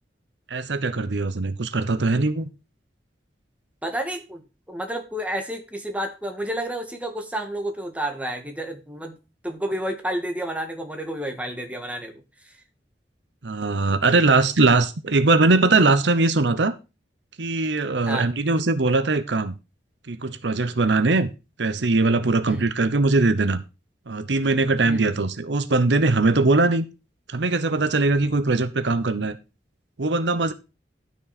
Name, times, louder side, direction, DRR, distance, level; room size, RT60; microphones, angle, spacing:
voice 1, 0.5-2.5 13.4-16.7 17.4-19.5 20.1-21.3 21.6-23.6 24.1-26.9 27.3-29.4 30.0-30.5, right 3 dB, 85° right, 0.9 m, -21 dB
voice 2, 3.8-4.4 4.7-9.2 9.4-12.2 18.1-18.3 22.5-22.7 24.8-25.0, right 1 dB, 10° right, 1.7 m, -30 dB
12.5 x 6.2 x 4.2 m
head